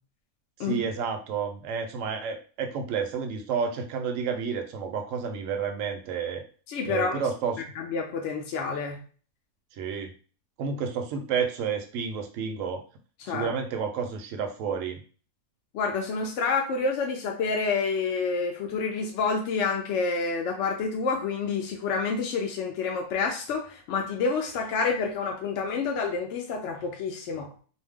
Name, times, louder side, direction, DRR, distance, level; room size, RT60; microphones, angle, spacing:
voice 1, 0.6-6.4 6.8-7.6 9.7-10.1 10.6-12.8 13.3-15.0, right 6 dB, 70° right, 4 dB, 0.8 m, -30 dB
voice 2, 6.7-7.2 7.8-9.0 13.2-13.5 15.7-27.5, left 4 dB, 70° left, 2 dB, 0.7 m, -28 dB
2.6 x 2.0 x 3.4 m, 0.40 s
omnidirectional pair, 1.7 m